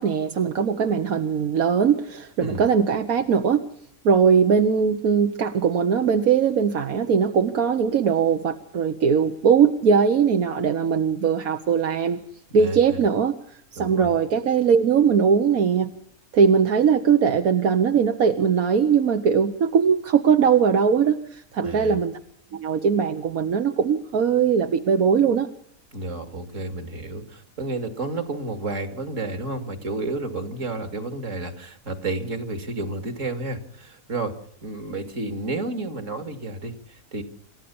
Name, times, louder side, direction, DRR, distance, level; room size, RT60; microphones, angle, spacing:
voice 1, 0.0-3.6 4.0-12.2 12.5-13.4 13.7-15.9 16.3-22.2 22.5-25.5, right 6 dB, 85° right, 6 dB, 1.6 m, -20 dB
voice 2, 12.5-13.1 13.8-14.1 21.6-22.0 25.9-34.3 34.6-37.2, right 2 dB, 60° right, 8 dB, 2.7 m, -31 dB
28.0 x 13.5 x 7.0 m, 0.66 s
omnidirectional pair, 1.5 m